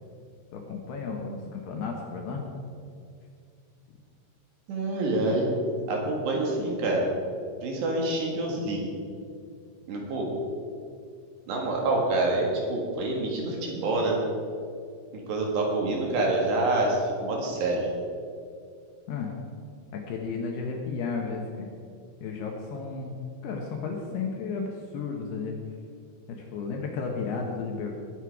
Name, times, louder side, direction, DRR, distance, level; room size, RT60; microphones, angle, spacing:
voice 1, 0.5-2.4 19.1-19.3 19.9-21.7 22.2-25.6 26.3-28.0, left 4 dB, 70° left, 1 dB, 2.7 m, -33 dB
voice 2, 4.7-5.5 5.9-7.1 7.6-8.9 9.9-10.3 11.5-14.2 15.1-17.9, right 2 dB, 65° right, -1 dB, 3.8 m, -27 dB
19.5 x 7.8 x 4.8 m, 2.3 s
omnidirectional pair, 5.7 m